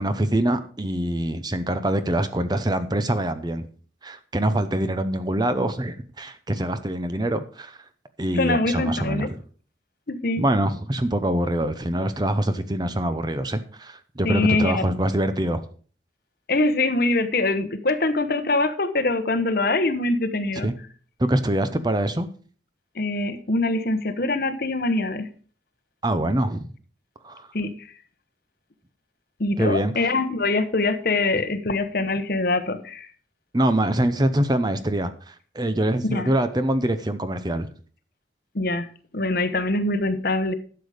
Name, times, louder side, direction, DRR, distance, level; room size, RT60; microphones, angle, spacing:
voice 1, 0.0-3.7 4.0-7.8 8.2-9.3 10.4-15.6 20.6-20.8 21.2-22.3 26.0-26.7 27.2-27.5 29.6-30.1 33.5-37.7, right 1 dB, 20° right, 11 dB, 0.7 m, -24 dB
voice 2, 8.3-9.3 10.1-10.4 14.2-14.9 16.5-20.7 22.9-25.3 27.5-27.9 29.4-33.1 36.0-36.3 38.5-38.9 39.1-40.5, left 2 dB, 55° left, 9 dB, 1.1 m, -23 dB
12.0 x 6.9 x 5.0 m, 0.43 s
head